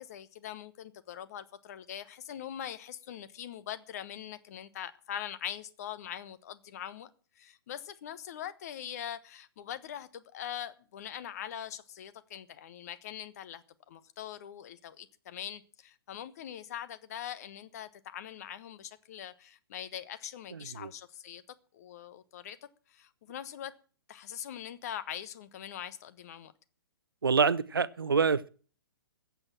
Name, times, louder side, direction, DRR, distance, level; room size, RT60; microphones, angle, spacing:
voice 1, 0.0-7.1 7.4-21.4 21.7-22.6 22.9-23.7 24.1-26.5, left 10 dB, 40° left, 1.2 m, -42 dB
voice 2, 27.2-28.5, right 5 dB, 70° right, 0.6 m, -26 dB
14.5 x 8.3 x 7.4 m
figure-of-eight pair, 120°, 12 cm